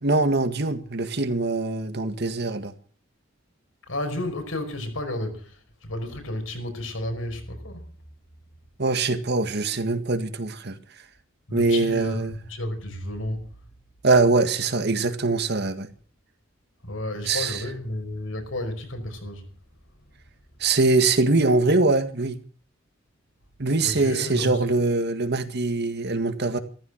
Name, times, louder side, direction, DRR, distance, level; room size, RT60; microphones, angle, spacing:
voice 1, 0.0-2.7 8.8-10.8 11.5-12.4 14.0-15.9 17.2-17.7 20.6-22.4 23.6-26.6, right 3 dB, 55° right, 1.9 m, -23 dB
voice 2, 3.9-5.5 5.8-7.8 11.5-13.4 16.9-19.4 23.8-24.6, left 1 dB, 85° left, 5.3 m, -31 dB
15.0 x 14.0 x 6.4 m
head